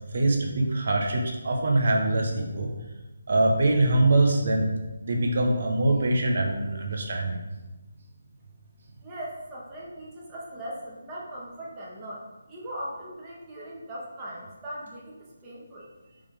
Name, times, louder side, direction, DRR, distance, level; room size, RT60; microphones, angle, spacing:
voice 1, 0.1-2.7 3.3-4.7 5.0-7.4, right 2 dB, 55° right, 1 dB, 1.2 m, -23 dB
voice 2, 9.0-12.2 12.5-15.1 15.4-15.9, right 1 dB, 20° right, -5 dB, 1.5 m, -39 dB
5.4 x 3.4 x 5.0 m, 1.1 s
figure-of-eight pair, 155°, 0 cm